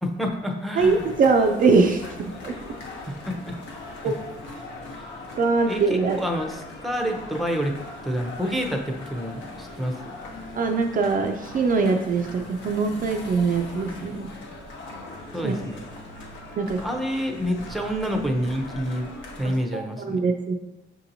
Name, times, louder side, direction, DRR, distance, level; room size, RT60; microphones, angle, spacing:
voice 1, 0.0-1.1 3.0-3.6 4.0-4.1 5.0-5.1 5.7-7.8 8.0-10.0 15.3-15.9 16.8-19.1 19.4-20.2, equal, ahead, 3 dB, 0.6 m, -28 dB
sound 1, 0.8-19.6, left 2 dB, 70° left, 0.9 m, -40 dB
voice 2, 0.8-2.5 4.0-4.1 5.4-6.2 10.6-14.3 15.4-15.5 16.6-16.8 19.4-20.6, right 4 dB, 45° right, 4 dB, 0.4 m, -22 dB
5.9 x 2.8 x 2.6 m, 0.97 s
cardioid pair, 90°, 20 cm